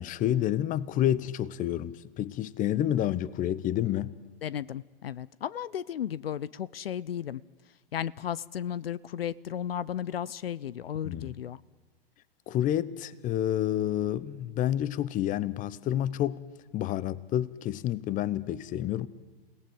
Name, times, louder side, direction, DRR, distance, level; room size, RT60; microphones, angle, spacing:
voice 1, 0.0-4.1 11.0-11.3 12.5-16.4 16.7-19.1, left 12 dB, 25° left, 0.9 m, -29 dB
voice 2, 4.4-7.4 7.9-11.6, left 9 dB, 80° left, 0.7 m, -34 dB
28.0 x 18.0 x 7.7 m
hypercardioid pair, 105°, 29 cm